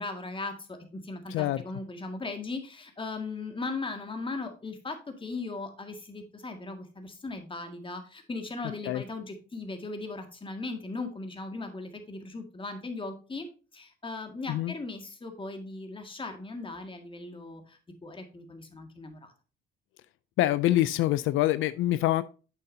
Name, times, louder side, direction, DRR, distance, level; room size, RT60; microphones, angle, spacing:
voice 1, 0.0-13.5 13.7-19.3, left 3 dB, 25° left, 5 dB, 1.9 m, -38 dB
voice 2, 1.3-1.6 8.9-9.0 14.5-14.7 20.4-22.2, left 15 dB, 85° left, 15 dB, 0.4 m, -25 dB
8.4 x 6.8 x 2.7 m, 0.35 s
cardioid pair, 90°, 20 cm